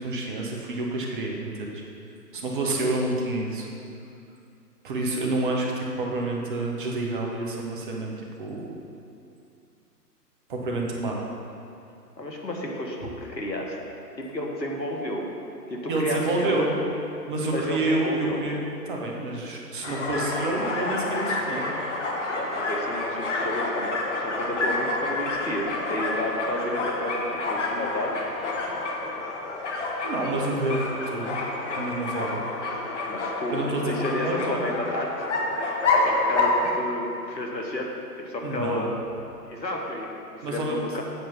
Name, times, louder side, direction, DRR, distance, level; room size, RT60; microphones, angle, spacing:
voice 1, 0.0-1.8 2.3-3.7 4.8-8.7 10.5-11.2 15.9-16.7 17.3-18.6 18.9-21.7 30.0-31.4 31.8-32.4 33.5-34.7 38.4-38.9 40.4-40.8, right 2 dB, 30° right, -1 dB, 1.0 m, -28 dB
voice 2, 12.2-13.8 14.2-15.2 15.7-16.7 17.5-18.4 22.3-28.1 33.1-35.3 36.0-37.9 38.2-38.9 39.5-41.0, left 1 dB, 90° left, 0 dB, 1.4 m, -31 dB
sound 1, 19.8-36.7, left 2 dB, 45° left, 1.0 m, -28 dB
7.8 x 4.5 x 5.4 m, 2.6 s
figure-of-eight pair, 135°, 50 cm